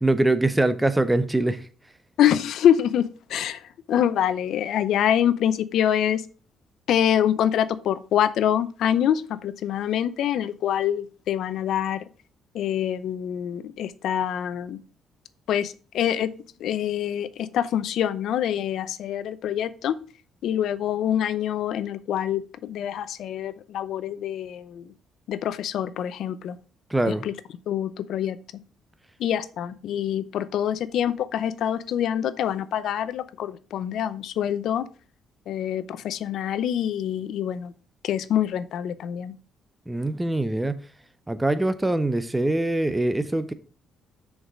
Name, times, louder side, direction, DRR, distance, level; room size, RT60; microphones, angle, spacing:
voice 1, 0.0-1.7 26.9-27.2 39.9-40.8 41.3-43.5, right 2 dB, 10° right, 0.6 m, -23 dB
voice 2, 2.2-6.3 6.9-12.0 12.5-14.8 15.5-16.3 16.6-20.0 20.4-24.9 25.3-26.6 27.1-27.3 27.7-28.4 29.2-34.9 35.5-37.7 38.0-39.3, left 10 dB, 75° left, 0.6 m, -25 dB
6.4 x 4.7 x 4.9 m
cardioid pair, 90°, 0 cm